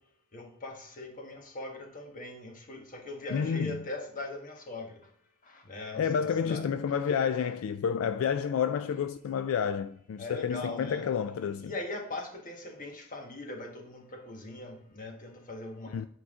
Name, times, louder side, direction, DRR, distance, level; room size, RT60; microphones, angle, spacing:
voice 1, 0.3-5.0 5.4-6.6 10.2-11.1 11.6-16.1, left 2 dB, 40° left, 1.3 m, -41 dB
voice 2, 3.3-3.8 6.0-11.7 15.9-16.1, left 7 dB, 70° left, 0.3 m, -30 dB
8.6 x 4.6 x 3.6 m
head